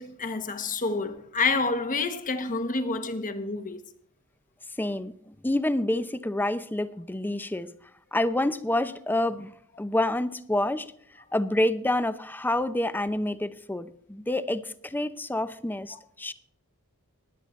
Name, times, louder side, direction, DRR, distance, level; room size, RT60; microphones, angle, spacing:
voice 1, 0.0-3.8, left 3 dB, 35° left, 1.2 m, -28 dB
voice 2, 4.8-7.7 8.1-9.5 9.8-10.9 11.3-16.3, left 1 dB, 10° left, 0.6 m, -28 dB
20.5 x 9.1 x 3.2 m
head